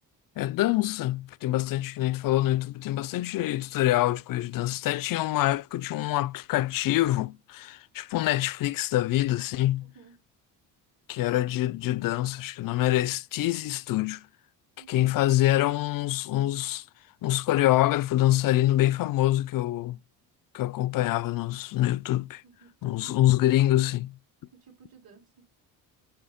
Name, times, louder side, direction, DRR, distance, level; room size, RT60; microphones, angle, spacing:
voice 1, 0.4-9.9 11.1-14.3 14.9-16.8 17.2-20.0 20.5-22.4 22.8-24.1, left 15 dB, 50° left, 0.5 m, -25 dB
voice 2, 9.8-10.1 14.8-15.2 22.4-23.6 24.5-25.4, right 6 dB, 55° right, 3.7 m, -54 dB
7.1 x 2.8 x 5.0 m
supercardioid pair, 70°, 43 cm